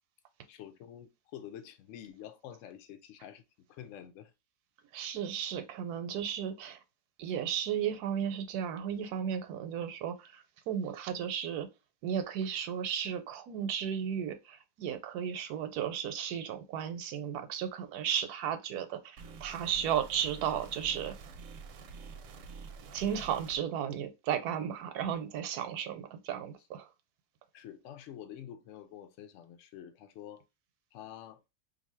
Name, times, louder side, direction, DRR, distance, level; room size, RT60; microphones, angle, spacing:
voice 1, 0.5-3.4 3.7-4.3 24.7-24.8 27.5-30.4 30.9-31.4, left 10 dB, 70° left, 0.8 m, -48 dB
voice 2, 4.9-6.8 7.2-11.7 12.0-21.2 22.9-26.9, right 9 dB, 85° right, 1.1 m, -34 dB
sound 1, 19.2-23.6, right 5 dB, 70° right, 0.9 m, -47 dB
2.6 x 2.6 x 4.2 m
omnidirectional pair, 1.6 m